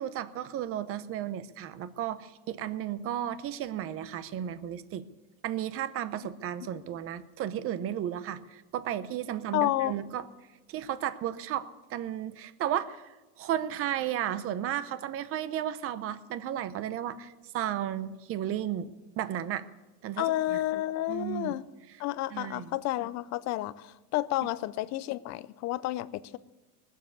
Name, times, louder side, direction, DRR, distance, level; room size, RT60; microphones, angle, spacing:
voice 1, 0.0-5.0 5.4-10.2 10.7-19.6 20.0-20.6 21.1-21.5 22.3-22.8, right 11 dB, 30° right, 14 dB, 0.7 m, -34 dB
voice 2, 9.5-10.0 20.2-21.6 22.0-26.4, left 15 dB, 35° left, 15 dB, 0.5 m, -30 dB
19.5 x 7.4 x 8.2 m, 1.1 s
supercardioid pair, 150°, 46 cm